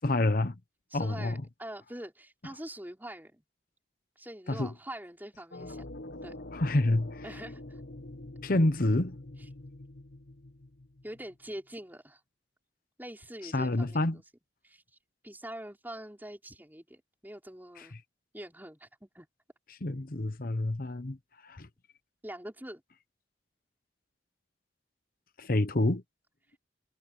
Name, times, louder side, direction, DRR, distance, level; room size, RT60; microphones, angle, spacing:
voice 1, 0.0-0.6 0.9-1.4 4.5-4.7 6.5-7.2 8.4-9.2 13.4-14.2 17.8-17.9 19.8-21.2 21.4-21.7 25.4-26.0, left 2 dB, 55° left, 1.0 m, -28 dB
voice 2, 0.9-3.4 4.2-5.8 6.2-6.3 7.2-7.8 11.0-12.2 13.0-14.2 14.6-14.8 15.2-17.9 18.3-19.3 22.2-22.8, right 1 dB, 10° right, 5.6 m, -44 dB
sound 1, 5.5-11.4, left 1 dB, 80° left, 1.3 m, -45 dB
head